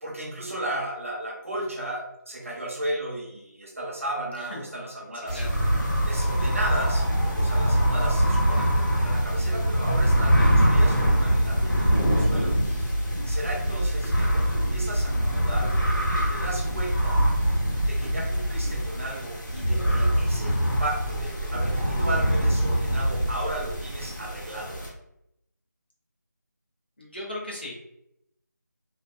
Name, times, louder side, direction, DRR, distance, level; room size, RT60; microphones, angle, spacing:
voice 1, 0.0-5.4 6.0-13.0 13.3-15.7 16.3-17.2 17.8-24.8, right 1 dB, 45° right, -2 dB, 0.7 m, -34 dB
sound 1, 5.3-24.9, equal, 90° left, 1.0 m, -24 dB
sound 2, 10.5-19.6, equal, 90° right, 0.8 m, -29 dB
voice 2, 27.0-27.7, left 1 dB, 30° left, -4 dB, 0.5 m, -36 dB
2.5 x 2.1 x 2.4 m, 0.80 s
figure-of-eight pair, 180°, 10 cm